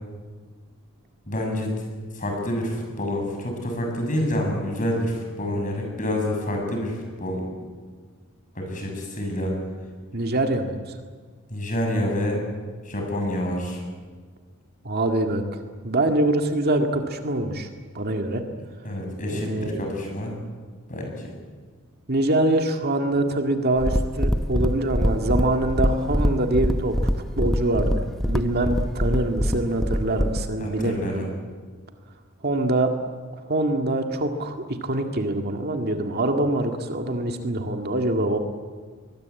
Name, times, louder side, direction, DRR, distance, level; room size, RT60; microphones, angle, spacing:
voice 1, 1.3-1.7 2.1-7.5 8.6-9.5 11.5-12.4 12.9-13.8 18.8-20.3 20.9-21.3 30.6-31.3, left 1 dB, 40° left, 2 dB, 7.2 m, -27 dB
voice 2, 10.1-11.0 14.8-15.4 15.8-17.7 17.9-18.4 19.3-19.8 22.1-26.9 27.4-31.3 32.4-32.9 33.3-38.4, right 1 dB, 50° right, 4 dB, 2.0 m, -24 dB
sound 1, 23.8-30.5, equal, ahead, 1.0 m, -24 dB
23.5 x 21.5 x 8.4 m, 1.5 s
head